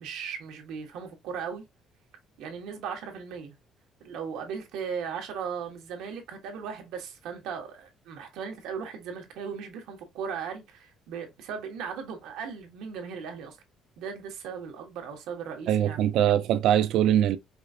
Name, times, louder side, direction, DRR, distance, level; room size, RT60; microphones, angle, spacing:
voice 1, 0.0-1.6 2.4-3.5 4.0-13.6 14.0-16.0, right 6 dB, 90° right, 1.3 m, -37 dB
voice 2, 15.7-17.4, right 11 dB, 70° right, 0.4 m, -22 dB
4.8 x 2.4 x 2.6 m
cardioid pair, 170°, 0 cm